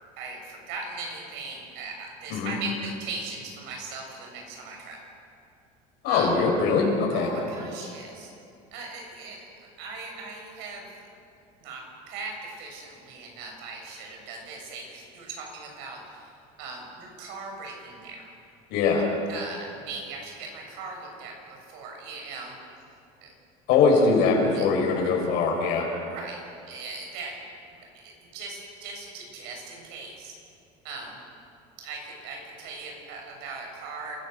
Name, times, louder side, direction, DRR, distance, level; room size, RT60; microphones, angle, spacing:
voice 1, 0.2-5.0 6.1-6.4 7.1-8.3 8.7-9.5 9.8-10.8 11.6-16.3 16.6-18.2 19.3-22.6 23.2-23.3 24.5-24.6 26.1-27.4 27.9-30.4 30.8-31.2 31.8-34.2, right 3 dB, 75° right, 1 dB, 7.2 m, -39 dB
voice 2, 6.0-7.3 18.7-19.0 23.7-25.8, left 4 dB, 65° left, -1 dB, 5.7 m, -22 dB
27.5 x 16.0 x 6.6 m, 2.5 s
cardioid pair, 125°, 18 cm